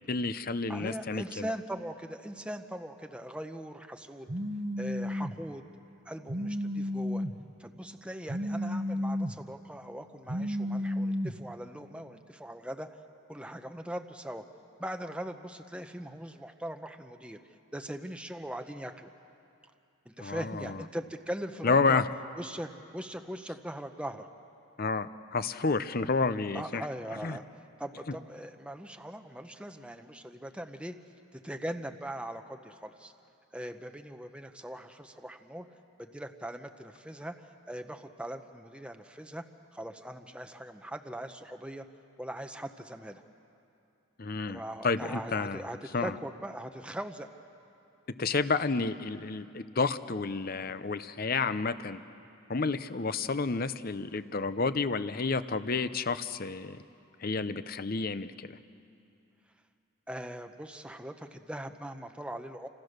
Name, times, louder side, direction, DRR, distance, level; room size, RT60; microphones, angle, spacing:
voice 1, 0.1-1.5 20.2-20.8 21.6-22.0 24.8-26.8 27.2-27.3 44.2-45.6 45.9-46.1 48.2-52.0 52.5-56.8 57.2-58.6, left 4 dB, 45° left, 13 dB, 0.7 m, -30 dB
voice 2, 0.7-4.3 4.8-5.7 6.0-7.2 7.6-12.9 13.3-14.4 14.8-17.4 17.7-19.1 20.1-22.0 22.4-24.3 26.5-30.9 31.3-33.1 33.5-35.7 36.0-39.4 39.7-41.8 42.2-43.2 44.5-47.3 60.1-62.7, right 1 dB, 5° right, 6 dB, 0.8 m, -40 dB
Telephone, 4.3-5.3 6.3-7.3 8.3-9.3 10.3-11.3, left 1 dB, 35° right, 1.1 m, -32 dB
29.5 x 26.5 x 6.6 m, 2.7 s
head